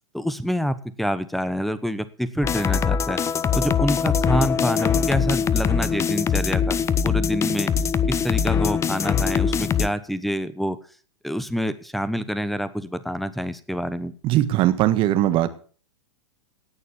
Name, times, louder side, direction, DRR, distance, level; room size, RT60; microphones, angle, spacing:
voice 1, 0.1-3.2 3.5-6.8 7.0-7.7 8.1-10.8 11.2-14.1, equal, ahead, 15 dB, 1.1 m, -27 dB
sound 1, 2.4-9.9, left 7 dB, 20° left, 0.7 m, -22 dB
voice 2, 14.2-15.5, right 13 dB, 35° right, 12 dB, 1.6 m, -20 dB
18.0 x 6.6 x 7.2 m, 0.43 s
hypercardioid pair, 110°, 15 cm